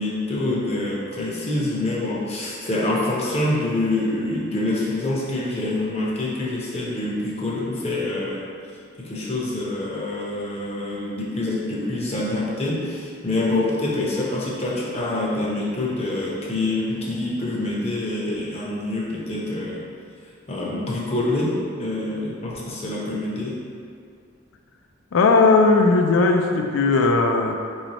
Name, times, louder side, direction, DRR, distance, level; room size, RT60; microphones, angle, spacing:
voice 1, 0.0-8.4 9.0-19.8 20.5-23.6, left 2 dB, 30° left, -5 dB, 0.6 m, -26 dB
voice 2, 25.1-27.6, left 3 dB, 80° left, 3 dB, 0.4 m, -17 dB
3.2 x 3.0 x 4.0 m, 2.3 s
head